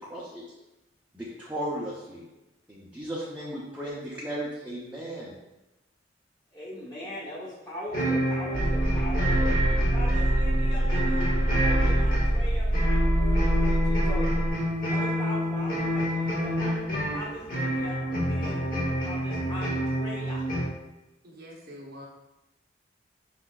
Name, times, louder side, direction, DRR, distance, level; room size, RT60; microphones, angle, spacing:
voice 1, 0.1-0.4 1.1-2.2 2.7-5.3, right 1 dB, 10° right, -7 dB, 0.7 m, -35 dB
voice 2, 6.5-9.6 9.9-14.4 14.9-16.7 17.1-18.7 19.0-20.4, equal, 25° left, -7 dB, 1.4 m, -41 dB
sound 1, 7.9-20.6, equal, 50° left, 1.1 m, -28 dB
sound 2, 8.5-14.5, right 1 dB, 90° right, 1.3 m, -24 dB
voice 3, 21.2-22.1, equal, 55° right, -2 dB, 0.9 m, -45 dB
5.5 x 4.0 x 2.4 m, 0.99 s
head